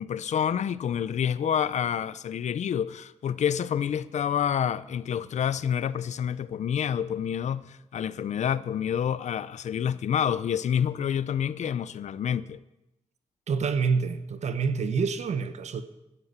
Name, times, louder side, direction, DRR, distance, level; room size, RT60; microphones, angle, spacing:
voice 1, 0.0-12.6, left 8 dB, 75° left, 0.6 m, -28 dB
voice 2, 13.5-15.8, right 5 dB, 75° right, 1.2 m, -27 dB
13.0 x 9.8 x 8.2 m
wide cardioid pair, 100°, 12 cm